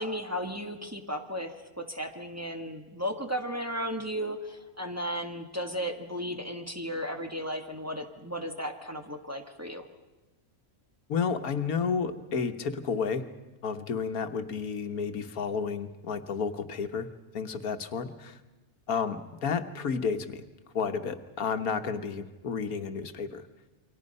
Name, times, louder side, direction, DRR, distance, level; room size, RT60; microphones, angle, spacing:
voice 1, 0.0-9.9, equal, 10° right, 3 dB, 1.5 m, -35 dB
voice 2, 11.1-13.3 13.6-17.1 17.3-18.4 18.9-20.4 20.7-23.4, left 5 dB, 90° left, 8 dB, 1.6 m, -31 dB
29.0 x 24.0 x 5.4 m, 1.1 s
omnidirectional pair, 1.5 m